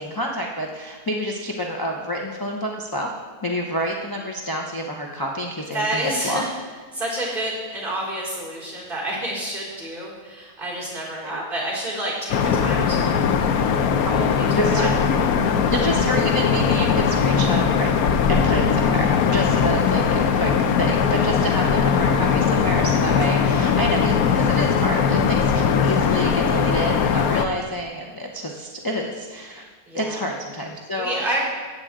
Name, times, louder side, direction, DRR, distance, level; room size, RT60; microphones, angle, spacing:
voice 1, 0.0-3.1 3.4-6.5 11.2-11.4 14.6-14.9 15.7-17.9 18.3-20.5 20.8-29.7 29.9-31.4, equal, 25° left, 0 dB, 0.5 m, -28 dB
voice 2, 5.7-6.5 6.9-14.9 29.9-30.2 31.0-31.4, right 1 dB, 35° right, -6 dB, 3.9 m, -29 dB
sound 1, 12.3-27.4, left 6 dB, 70° left, 1.1 m, -20 dB
15.5 x 8.1 x 3.7 m, 1.4 s
omnidirectional pair, 1.6 m